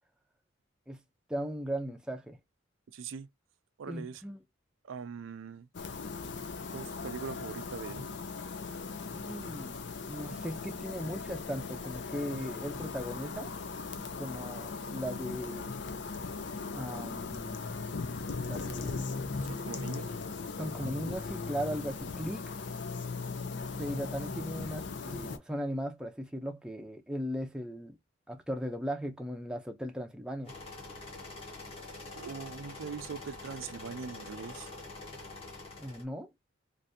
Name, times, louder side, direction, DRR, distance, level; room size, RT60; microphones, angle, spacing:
voice 1, 1.3-2.4 3.9-4.4 9.1-9.8 10.1-13.5 14.2-15.8 16.7-19.1 19.9-20.0 20.6-22.5 23.8-28.0 28.3-30.5 35.8-36.3, equal, 5° right, 0.5 m, -38 dB
voice 2, 2.9-3.3 3.8-4.2 4.8-5.7 6.7-8.1 19.5-20.2 32.1-34.7, right 6 dB, 80° right, 0.4 m, -42 dB
sound 1, 5.7-25.4, left 4 dB, 60° left, 0.5 m, -38 dB
sound 2, 9.3-23.6, left 2 dB, 80° left, 0.9 m, -55 dB
sound 3, 30.4-36.0, left 2 dB, 30° left, 1.2 m, -45 dB
3.4 x 2.6 x 2.6 m
head